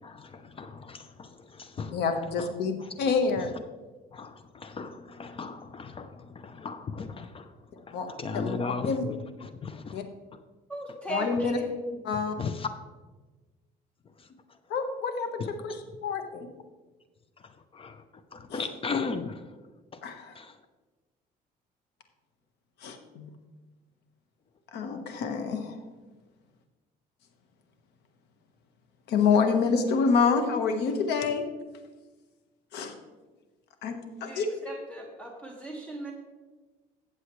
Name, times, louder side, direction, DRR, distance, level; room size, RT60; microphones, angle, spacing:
voice 1, 0.0-2.0 2.4-2.5 4.1-10.0 11.9-12.0 12.4-12.7 14.2-14.3 15.4-15.5 17.7-18.0 18.3-19.4 19.9-20.0 20.3-20.5, left 4 dB, 35° left, 10 dB, 0.6 m, -36 dB
voice 2, 1.9-3.5 7.9-8.1 8.3-8.6 8.8-9.1 9.9-10.0 11.1-11.6 12.0-12.4 14.7-16.5 18.5-18.7 20.0-20.4 22.8-23.3 24.7-25.8 29.1-31.4 32.7-32.9 33.8-34.5, left 5 dB, 80° left, 6 dB, 1.3 m, -27 dB
voice 3, 10.7-11.7 34.3-36.1, right 2 dB, 10° left, 0 dB, 1.6 m, -38 dB
14.5 x 7.6 x 3.2 m, 1.3 s
cardioid pair, 110°, 17 cm